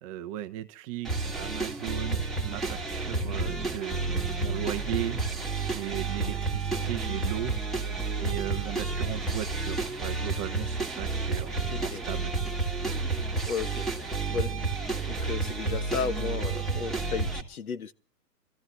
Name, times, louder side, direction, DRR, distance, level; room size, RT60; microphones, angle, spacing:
voice 1, 0.0-7.8 8.2-12.3, right 13 dB, 20° right, 0.8 m, -37 dB
sound 1, 1.0-17.4, right 3 dB, ahead, 2.5 m, -30 dB
voice 2, 13.5-13.8 14.3-14.7 15.0-17.9, left 6 dB, 60° left, 1.6 m, -34 dB
27.0 x 14.5 x 3.2 m
figure-of-eight pair, 130°, 48 cm